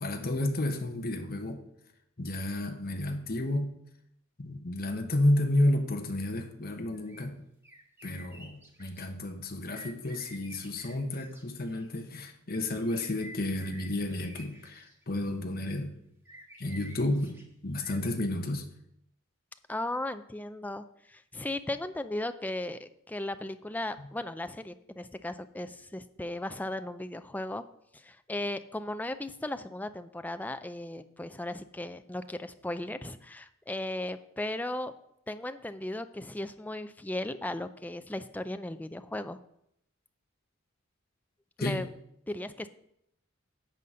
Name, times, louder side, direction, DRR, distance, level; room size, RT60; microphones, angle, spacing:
voice 1, 0.0-1.6 2.2-3.7 4.4-7.4 8.0-16.0 16.6-18.7 41.6-41.8, left 1 dB, 45° left, 5 dB, 1.1 m, -31 dB
sound 1, 6.9-7.2 7.6-9.0 9.6-12.0 12.7-15.2 16.2-17.4 17.8-18.1, equal, 10° right, 1.4 m, -51 dB
voice 2, 19.7-27.6 27.9-34.9 35.3-39.4 41.6-41.9 42.3-42.7, left 1 dB, 10° left, 10 dB, 0.4 m, -36 dB
10.5 x 4.1 x 7.6 m, 0.76 s
head